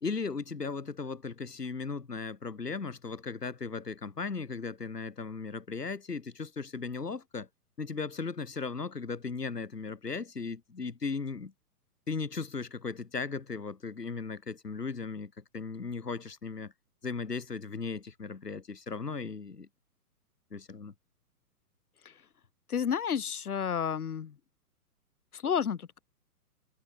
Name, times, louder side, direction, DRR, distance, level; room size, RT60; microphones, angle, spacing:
voice 1, 0.0-7.5 7.8-11.5 12.1-16.7 17.0-19.7 20.5-20.9, left 4 dB, 85° left, 2.8 m, -37 dB
voice 2, 22.7-24.3 25.3-26.0, left 7 dB, 70° left, 4.4 m, -31 dB
figure-of-eight pair, 120°, 46 cm